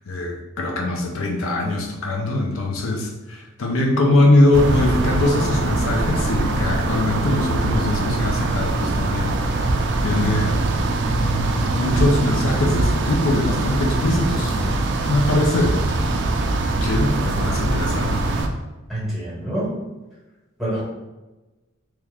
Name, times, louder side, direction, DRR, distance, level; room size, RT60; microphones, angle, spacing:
voice 1, 0.1-9.8 10.0-10.6 11.2-14.8 15.1-15.8 16.8-18.2, left 1 dB, 85° left, 1 dB, 0.6 m, -22 dB
sound 1, 4.5-18.5, right 2 dB, 60° right, 0.4 m, -22 dB
voice 2, 18.9-19.7 20.6-20.8, right 1 dB, ahead, -8 dB, 1.3 m, -26 dB
3.0 x 2.4 x 3.3 m, 1.1 s
head